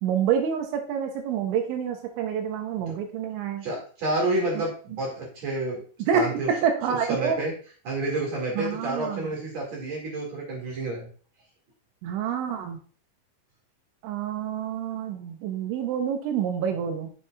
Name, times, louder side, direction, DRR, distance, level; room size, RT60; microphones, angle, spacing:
voice 1, 0.0-3.7 6.1-7.4 8.6-9.3 12.0-12.8 14.0-17.1, right 8 dB, 80° right, 5 dB, 3.1 m, -27 dB
voice 2, 3.6-5.8 6.1-6.5 6.9-7.5 7.8-11.1, right 2 dB, 45° right, -3 dB, 2.9 m, -29 dB
7.4 x 7.2 x 2.5 m, 0.40 s
omnidirectional pair, 5.7 m